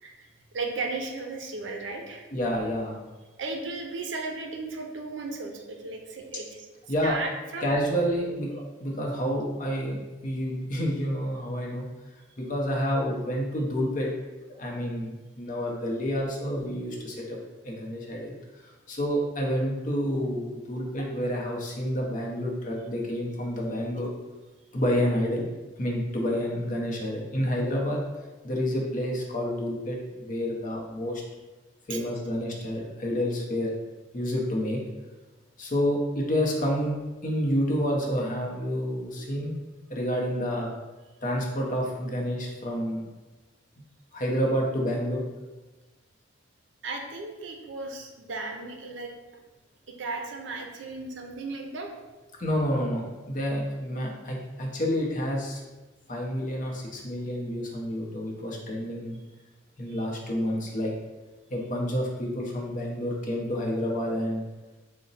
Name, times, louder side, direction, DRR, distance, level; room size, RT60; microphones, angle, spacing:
voice 1, 0.5-2.3 3.4-6.7 7.0-7.7 31.9-32.0 46.8-49.1 49.9-51.9 59.9-60.1, right 3 dB, 70° right, 3 dB, 0.5 m, -35 dB
voice 2, 2.3-3.0 6.9-7.2 7.6-11.9 12.4-14.1 14.6-17.4 17.6-18.3 18.9-24.1 24.7-25.5 25.8-28.0 28.4-31.2 31.9-33.7 34.1-34.8 35.6-39.5 39.9-40.7 41.2-43.0 44.1-45.2 52.4-55.6 56.1-59.2 59.8-60.9 61.5-64.4, equal, 40° left, -1 dB, 0.6 m, -29 dB
3.9 x 2.1 x 3.9 m, 1.2 s
head